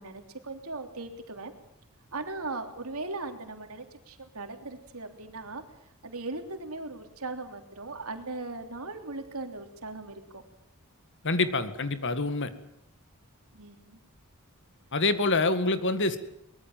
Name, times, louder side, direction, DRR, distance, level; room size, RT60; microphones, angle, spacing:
voice 1, 0.0-1.5 2.1-5.6 6.0-10.4 13.5-14.0 15.2-15.3, right 3 dB, 70° right, 6 dB, 3.3 m, -38 dB
voice 2, 11.2-12.5 14.9-16.2, left 3 dB, 55° left, 11 dB, 1.9 m, -26 dB
23.5 x 20.5 x 7.5 m, 0.79 s
head